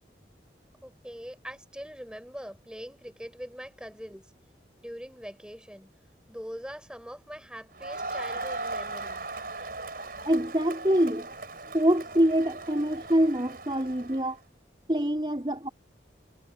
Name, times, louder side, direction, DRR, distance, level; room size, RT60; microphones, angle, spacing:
voice 1, 0.8-4.3 4.8-5.9 6.3-9.3, equal, 5° right, 7.7 m, -42 dB
Crowd, 7.7-14.3, right 3 dB, 55° right, 5.0 m, -38 dB
voice 2, 10.2-11.3 11.7-14.4 14.9-15.7, equal, 25° right, 4.3 m, -25 dB
head